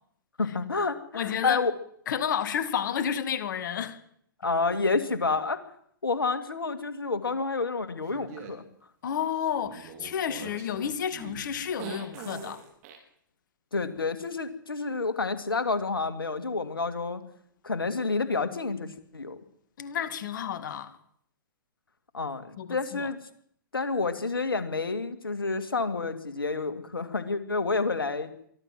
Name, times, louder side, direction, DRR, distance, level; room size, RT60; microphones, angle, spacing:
voice 1, 0.4-1.7 4.4-5.6 6.0-8.6 13.7-17.2 17.6-19.4 22.1-23.2 23.7-28.3, left 4 dB, 85° left, 2.4 m, -29 dB
voice 2, 1.1-1.6 2.1-4.0 9.0-12.6 19.8-21.0 22.6-23.1, left 8 dB, 60° left, 2.1 m, -31 dB
sound 1, 8.1-8.5 9.4-13.0, right 7 dB, 45° right, 5.0 m, -43 dB
23.5 x 14.5 x 7.7 m
hypercardioid pair, 115°, 12 cm